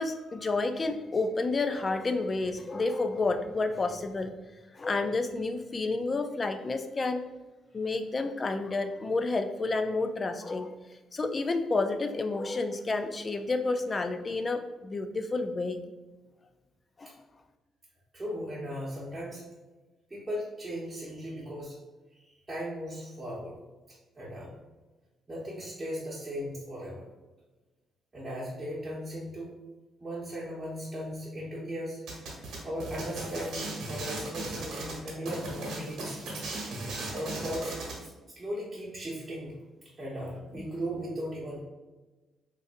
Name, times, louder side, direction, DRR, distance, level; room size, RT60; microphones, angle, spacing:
voice 1, 0.0-4.3 4.7-7.2 7.7-10.8 11.1-15.8 17.0-17.1 40.5-40.7, left 3 dB, 30° left, 7 dB, 0.3 m, -30 dB
voice 2, 18.1-19.4 20.1-21.7 22.1-23.6 24.2-24.5 25.3-27.0 28.1-29.5 30.0-32.0 32.6-36.2 37.1-37.7 38.0-38.1 38.4-39.6 40.0-41.6, equal, 20° right, -8 dB, 1.0 m, -37 dB
sound 1, 32.1-38.0, right 2 dB, 80° right, 1.1 m, -37 dB
3.8 x 2.6 x 2.5 m, 1.2 s
cardioid pair, 90°, 0 cm